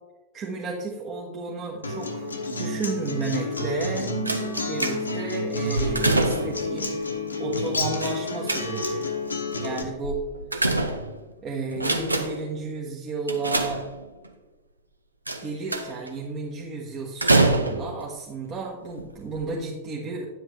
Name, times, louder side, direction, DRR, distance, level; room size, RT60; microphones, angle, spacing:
voice 1, 0.3-2.3 2.6-4.1 4.6-7.1 7.4-9.0 9.6-10.2 11.4-13.9 15.4-20.3, right 3 dB, 30° right, -2 dB, 1.2 m, -32 dB
Acoustic guitar, 1.8-9.8, left 2 dB, 80° left, 1.0 m, -29 dB
sound 1, 4.3-5.3 5.7-6.7 8.0-9.0 10.0-11.3 11.7-12.5 13.3-14.3 15.3-16.1 17.2-18.0 18.9-19.0 19.3-19.4, right 2 dB, 80° right, 0.7 m, -25 dB
9.8 x 7.8 x 3.3 m, 1.1 s
figure-of-eight pair, 90°, 0 cm